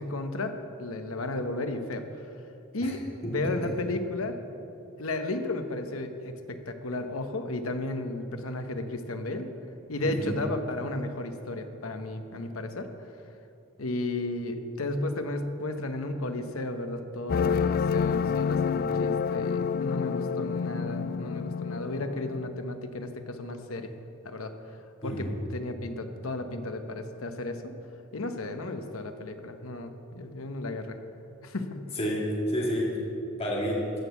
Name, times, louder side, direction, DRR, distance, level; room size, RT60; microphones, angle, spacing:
voice 1, 0.0-2.0 2.7-4.4 5.0-9.5 9.9-12.9 13.8-23.9 24.2-24.5 25.0-27.7 28.1-31.0 31.4-31.8, left 2 dB, 80° left, 7 dB, 1.0 m, -33 dB
voice 2, 10.0-10.4 25.0-25.3 32.0-32.9 33.4-33.8, equal, 30° left, -4 dB, 2.2 m, -30 dB
sound 1, 17.3-22.5, left 6 dB, 45° left, 0.3 m, -28 dB
15.0 x 6.4 x 7.1 m, 2.7 s
head